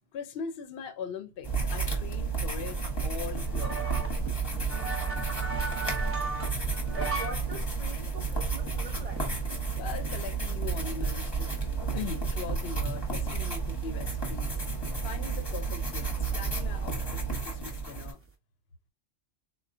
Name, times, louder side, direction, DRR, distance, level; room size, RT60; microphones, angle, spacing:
voice 1, 0.1-3.8 9.8-11.5 11.9-14.6 15.0-18.2, left 6 dB, 65° left, 0.8 m, -40 dB
sound 1, 1.4-18.1, right 4 dB, 25° left, 0.8 m, -31 dB
sound 2, 2.7-7.4 7.8-7.9 8.3-9.8 10.1-10.2 10.7-10.8 11.1-12.6 13.1-13.2 13.4-13.9 14.5-14.7 15.3-15.4 15.8-16.9 17.1-17.5 17.8-18.3, right 3 dB, 15° right, 0.6 m, -37 dB
voice 2, 6.9-9.5, right 3 dB, 55° right, 0.4 m, -44 dB
3.7 x 2.1 x 2.5 m
omnidirectional pair, 1.2 m